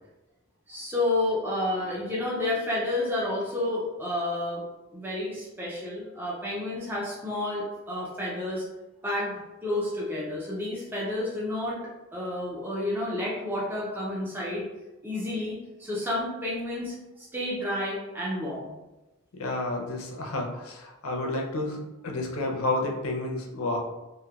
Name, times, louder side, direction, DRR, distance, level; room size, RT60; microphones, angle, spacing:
voice 1, 0.7-4.6 4.9-8.6 9.0-9.3 9.6-11.8 12.1-14.7 15.0-18.7, left 1 dB, 10° right, -6 dB, 0.4 m, -30 dB
voice 2, 19.3-23.8, left 2 dB, 70° left, 1 dB, 0.5 m, -30 dB
3.1 x 2.0 x 2.3 m, 1.0 s
head